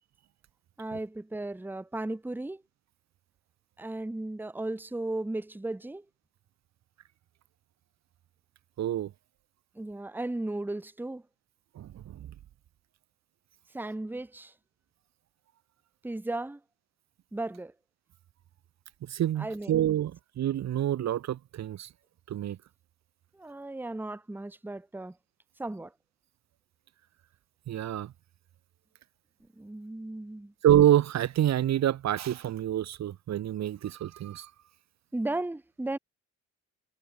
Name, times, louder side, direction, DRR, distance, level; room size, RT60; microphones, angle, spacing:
voice 1, 0.8-2.6 3.8-6.0 9.7-11.2 13.7-14.5 16.0-16.6 17.3-17.7 19.4-19.7 23.3-25.2 25.6-25.9 29.6-30.5 35.1-36.0, right 2 dB, 5° right, 1.0 m, -35 dB
voice 2, 8.8-9.1 11.7-12.3 19.0-21.9 22.3-22.6 27.7-28.1 30.6-34.5, right 11 dB, 60° right, 1.2 m, -27 dB
cardioid pair, 90°, 30 cm